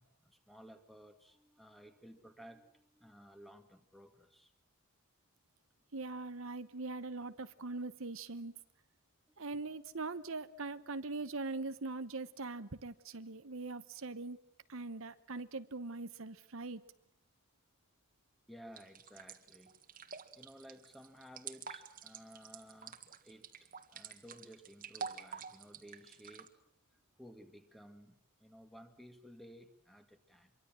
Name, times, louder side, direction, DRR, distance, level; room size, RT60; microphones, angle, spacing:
voice 1, 0.0-4.5 9.3-9.6 18.5-19.8 20.3-30.5, equal, ahead, 2.0 m, -56 dB
voice 2, 5.9-8.5 9.4-14.4 14.7-16.8, right 3 dB, 65° right, 1.0 m, -42 dB
sound 1, 18.8-26.5, right 6 dB, 40° right, 1.8 m, -48 dB
26.0 x 23.5 x 7.6 m
head